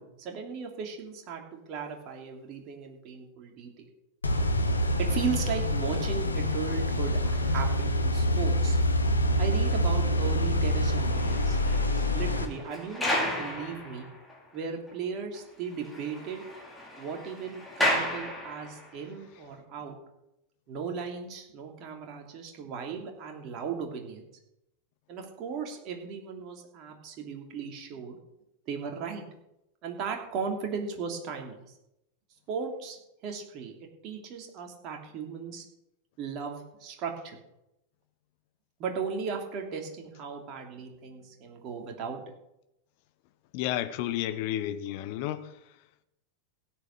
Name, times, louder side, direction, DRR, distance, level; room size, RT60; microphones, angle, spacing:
voice 1, 0.0-3.9 5.0-8.8 9.4-11.6 12.1-14.1 14.5-16.4 17.0-20.0 20.7-24.3 25.1-28.2 28.7-29.2 29.8-31.8 32.5-33.0 33.2-33.7 34.0-35.6 36.2-37.4 38.8-42.3, right 6 dB, 40° right, 3.0 m, -36 dB
sound 1, 4.2-12.5, left 1 dB, 80° left, 1.6 m, -26 dB
sound 2, 10.9-14.4 14.9-15.0 15.3-15.4 15.7-19.0, left 1 dB, 5° left, 4.9 m, -33 dB
voice 2, 43.5-45.5, left 12 dB, 45° left, 1.2 m, -31 dB
16.5 x 8.6 x 6.7 m
figure-of-eight pair, 90°, 0 cm